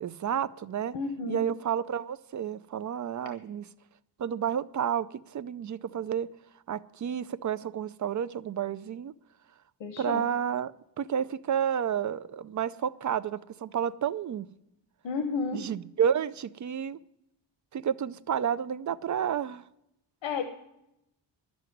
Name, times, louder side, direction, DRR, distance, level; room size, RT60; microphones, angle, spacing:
voice 1, 0.0-0.9 1.3-3.7 4.2-6.3 6.7-9.1 10.0-10.7 11.0-14.5 15.5-17.0 17.7-19.6, right 8 dB, 40° right, 16 dB, 0.5 m, -30 dB
voice 2, 0.9-1.4 9.8-10.2 15.0-15.6 20.2-20.4, left 4 dB, 85° left, 6 dB, 1.2 m, -31 dB
11.0 x 7.8 x 9.3 m, 0.84 s
wide cardioid pair, 130°, 45 cm